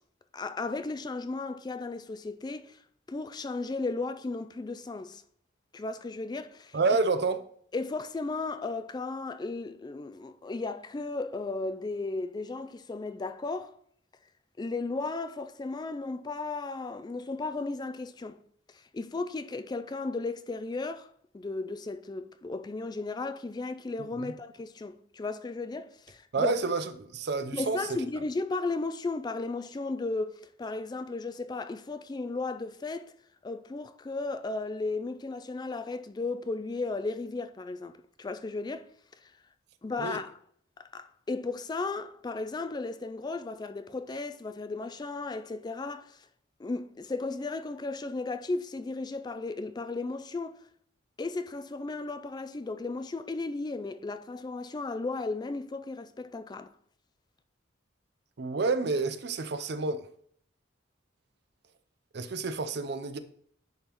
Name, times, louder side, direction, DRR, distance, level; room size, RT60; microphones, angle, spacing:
voice 1, 0.3-2.8 3.1-5.2 5.7-6.8 7.7-13.8 14.6-18.4 18.7-21.1 21.3-26.5 27.5-33.1 33.4-38.9 39.2-39.3 39.8-40.4 40.8-46.3 46.6-50.6 51.2-56.7, left 3 dB, 20° left, 0.3 m, -35 dB
voice 2, 6.7-7.4 24.2-24.3 26.3-28.0 40.0-40.2 58.4-60.1 62.1-63.2, right 4 dB, 60° right, 0.6 m, -29 dB
10.5 x 3.8 x 3.0 m
head